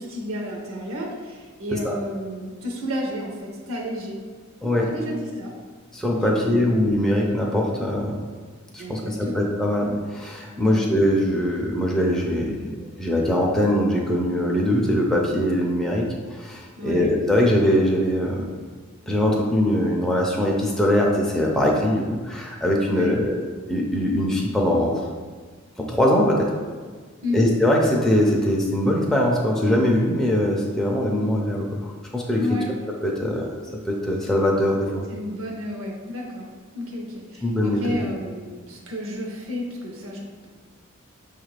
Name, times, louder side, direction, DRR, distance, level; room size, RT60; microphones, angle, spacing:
voice 1, 0.0-4.2 4.7-5.5 6.2-6.7 8.8-9.5 10.6-10.8 16.8-17.1 22.8-23.2 27.2-27.5 32.4-32.7 35.1-36.5 36.7-40.5, left 1 dB, 65° right, 0 dB, 0.7 m, -31 dB
voice 2, 4.6-4.9 5.9-8.2 8.7-18.5 19.1-23.4 23.7-25.0 25.8-26.5 27.3-32.4 33.0-33.4 33.9-35.0 37.4-38.0, left 1 dB, ahead, -3 dB, 0.4 m, -22 dB
5.8 x 2.4 x 3.2 m, 1.5 s
head